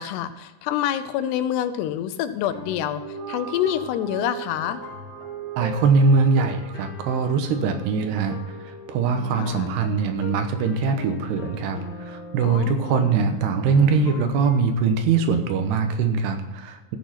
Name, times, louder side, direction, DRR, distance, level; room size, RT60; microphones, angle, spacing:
voice 1, 0.0-3.0 3.3-4.8 9.4-9.7 12.4-13.1, left 11 dB, 85° left, 12 dB, 2.8 m, -27 dB
sound 1, 2.4-14.6, left 3 dB, 60° left, 1.7 m, -40 dB
sound 2, 3.0-9.5, right 9 dB, 65° right, 2.6 m, -39 dB
voice 2, 5.6-8.4 8.6-17.0, right 5 dB, 80° right, 7 dB, 3.1 m, -22 dB
14.0 x 7.1 x 5.8 m, 1.1 s
omnidirectional pair, 4.7 m